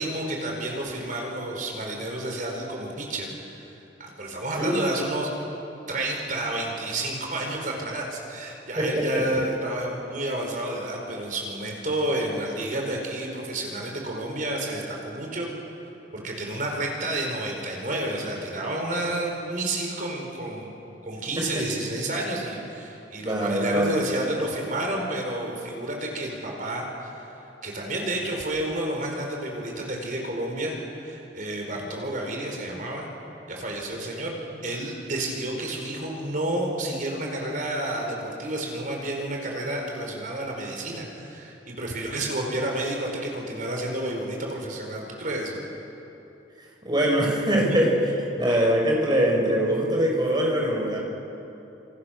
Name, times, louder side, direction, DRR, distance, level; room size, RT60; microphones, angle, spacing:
voice 1, 0.0-3.3 3.6-3.7 4.0-5.3 5.9-15.5 16.1-20.7 21.0-33.1 33.5-34.3 34.6-45.6, right 1 dB, 50° right, 0 dB, 4.8 m, -30 dB
voice 2, 8.8-9.2 21.4-21.6 23.2-24.3 46.8-47.9 48.4-51.0, equal, 25° right, -1 dB, 5.7 m, -23 dB
29.5 x 27.5 x 6.7 m, 3.0 s
head